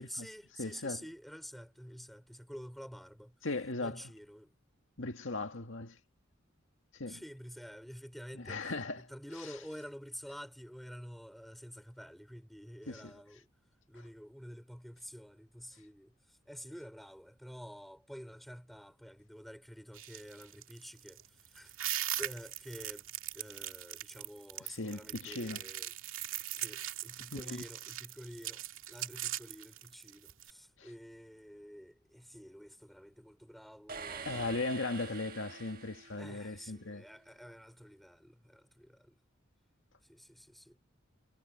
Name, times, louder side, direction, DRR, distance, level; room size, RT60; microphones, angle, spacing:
voice 1, 0.0-3.3 3.8-4.5 7.1-13.5 13.9-21.7 22.2-23.1 23.3-25.9 26.6-34.8 36.2-39.2 40.0-40.8, equal, ahead, 4.5 m, -49 dB
voice 2, 0.6-1.0 3.4-4.0 5.0-6.0 6.9-7.2 8.3-9.1 12.9-13.1 24.7-25.6 27.3-27.6 34.3-37.0, left 2 dB, 70° left, 2.1 m, -38 dB
sound 1, 19.9-30.5, right 13 dB, 80° right, 2.2 m, -40 dB
sound 2, 33.9-36.7, right 5 dB, 45° right, 1.4 m, -46 dB
head